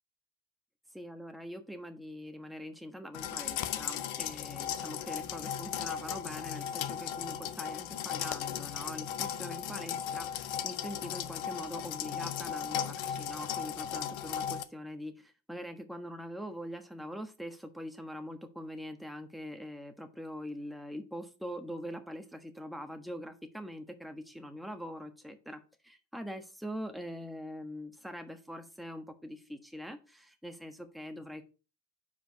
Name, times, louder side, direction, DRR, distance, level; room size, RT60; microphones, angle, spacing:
voice 1, 0.9-31.5, equal, ahead, 5 dB, 1.2 m, -43 dB
sound 1, 3.1-14.6, left 9 dB, 80° left, 0.8 m, -36 dB
5.0 x 4.8 x 6.3 m, 0.34 s
cardioid pair, 100°, 46 cm